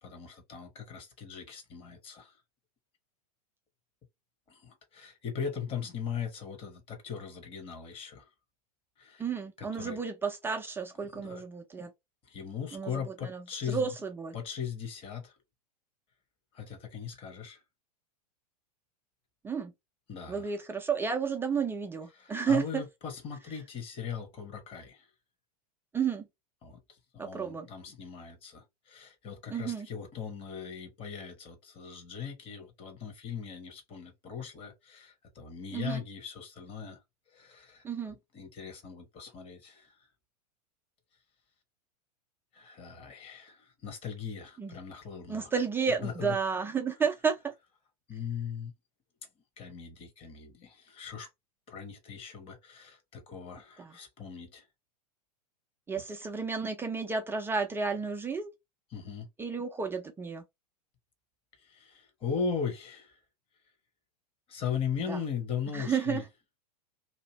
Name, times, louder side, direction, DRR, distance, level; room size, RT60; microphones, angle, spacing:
voice 1, 0.0-2.3 4.5-8.3 9.0-9.2 9.6-10.0 11.0-11.4 12.3-13.9 14.3-15.3 16.5-17.6 20.1-20.5 22.2-25.1 26.6-37.0 37.3-39.9 42.5-45.5 46.0-46.4 48.1-48.7 49.6-51.3 51.7-54.6 58.9-59.3 61.6-63.2 64.5-66.2, left 7 dB, 30° left, 1.2 m, -39 dB
voice 2, 9.2-11.9 12.7-14.4 19.4-19.7 20.3-22.8 25.9-26.3 27.2-27.7 29.5-29.9 35.7-36.0 37.8-38.2 44.6-44.8 45.3-47.5 53.8-53.9 55.9-58.5 59.4-60.4 65.1-65.2 65.7-66.2, right 6 dB, 10° right, 0.5 m, -32 dB
2.8 x 2.6 x 3.0 m
figure-of-eight pair, 95°, 20 cm